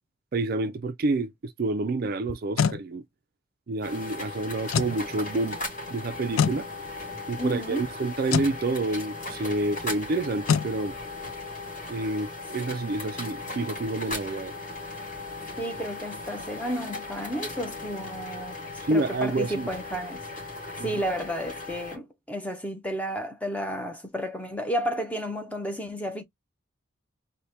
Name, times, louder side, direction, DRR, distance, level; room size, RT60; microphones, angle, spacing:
voice 1, 0.3-3.0 3.7-5.6 5.9-6.7 7.3-10.9 11.9-14.5 18.9-19.7 20.8-20.9, right 2 dB, 45° right, 0.4 m, -28 dB
sound 1, 2.3-2.8 4.7-5.0 6.4-6.6 8.3-8.5 10.5-10.7, left 6 dB, 80° left, 0.4 m, -24 dB
sound 2, 3.8-22.0, left 2 dB, 40° left, 2.7 m, -37 dB
voice 2, 7.4-7.9 15.6-20.2 20.8-26.2, equal, 5° left, 0.6 m, -32 dB
4.1 x 2.2 x 3.3 m
head